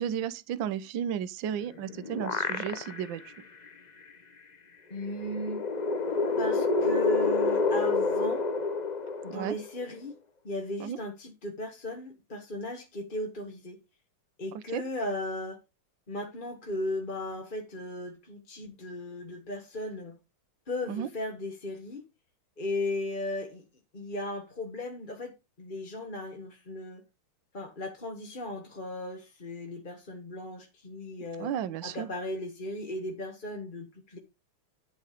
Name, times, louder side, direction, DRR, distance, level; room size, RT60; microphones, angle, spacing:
voice 1, 0.0-3.3 9.3-9.5 10.8-11.0 14.5-14.8 20.9-21.1 31.4-32.1, right 9 dB, 65° right, 1.5 m, -33 dB
sound 1, 1.6-3.2 3.7-3.8 5.0-9.8, left 3 dB, 85° left, 0.3 m, -28 dB
voice 2, 4.9-5.6 6.4-8.4 9.2-10.2 10.4-13.8 14.4-15.6 16.1-20.2 20.7-22.0 22.6-23.6 23.9-27.0 27.5-31.5 31.8-34.2, left 1 dB, 25° left, 1.4 m, -36 dB
11.0 x 5.9 x 5.1 m
omnidirectional pair, 2.4 m